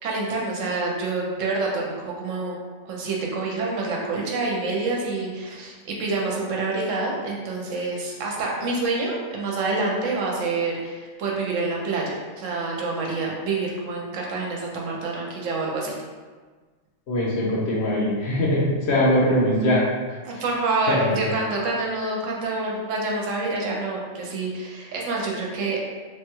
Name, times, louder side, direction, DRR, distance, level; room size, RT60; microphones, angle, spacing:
voice 1, 0.0-2.6 2.8-16.0 20.2-25.8, right 3 dB, 70° right, -2 dB, 0.9 m, -27 dB
voice 2, 17.1-20.4 20.9-21.3, left 1 dB, 60° left, -5 dB, 0.9 m, -22 dB
3.1 x 2.2 x 2.9 m, 1.4 s
omnidirectional pair, 1.4 m